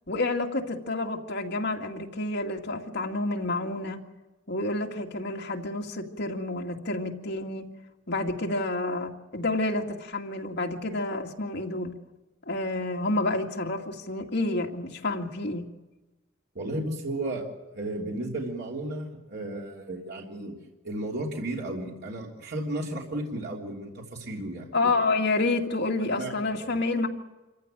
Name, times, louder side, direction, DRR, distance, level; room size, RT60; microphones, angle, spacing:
voice 1, 0.1-4.0 4.5-7.7 8.1-11.9 12.5-15.6 24.7-27.1, left 2 dB, 55° left, 2 dB, 2.2 m, -29 dB
voice 2, 16.5-17.5 17.7-20.5 20.8-24.9 26.1-26.3 26.6-26.8, right 1 dB, 55° right, -2 dB, 3.3 m, -34 dB
27.0 x 15.0 x 9.1 m, 1.1 s
head